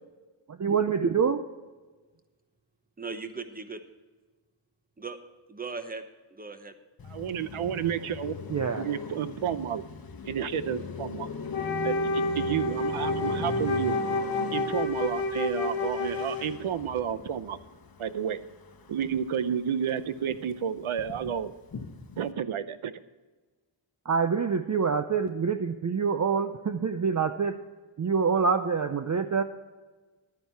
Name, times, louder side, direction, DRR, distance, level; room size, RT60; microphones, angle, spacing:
voice 1, 0.5-1.4 8.5-8.9 24.0-27.6 28.0-29.4, right 5 dB, 35° right, 8 dB, 0.5 m, -26 dB
voice 2, 3.0-3.8 5.0-5.2 5.5-6.0 6.3-6.7, right 4 dB, 15° right, 8 dB, 0.9 m, -38 dB
Car passing by, 7.0-19.5 19.8-22.3, left 5 dB, 45° left, 1.0 m, -39 dB
voice 3, 7.1-8.3 8.8-9.8 10.3-11.3 11.8-14.0 14.5-17.6 18.0-18.4 18.9-21.5 22.2-22.9, right 8 dB, 75° right, 13 dB, 0.8 m, -31 dB
Wind instrument woodwind instrument, 11.5-16.7, left 2 dB, 65° left, 1.1 m, -30 dB
11.5 x 9.7 x 4.6 m, 1.3 s
wide cardioid pair, 140°, 50 cm